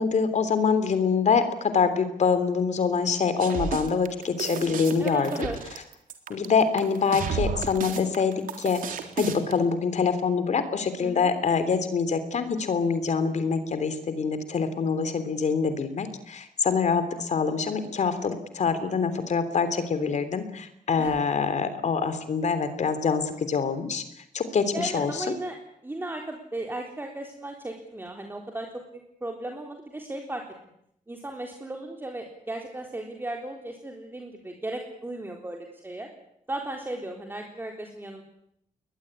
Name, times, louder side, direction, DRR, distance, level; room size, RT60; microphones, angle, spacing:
voice 1, 0.0-5.5 6.3-24.0 24.3-25.2, left 5 dB, 60° left, 11 dB, 3.2 m, -25 dB
sound 1, 3.4-9.5, right 6 dB, 90° right, 3.8 m, -32 dB
voice 2, 5.0-5.6 11.0-11.3 21.0-21.2 24.7-25.6 25.8-28.8 29.2-30.4 31.1-36.1 36.5-38.2, right 2 dB, 15° right, 3 dB, 3.9 m, -36 dB
21.5 x 21.0 x 9.9 m, 0.77 s
cardioid pair, 105°, 14 cm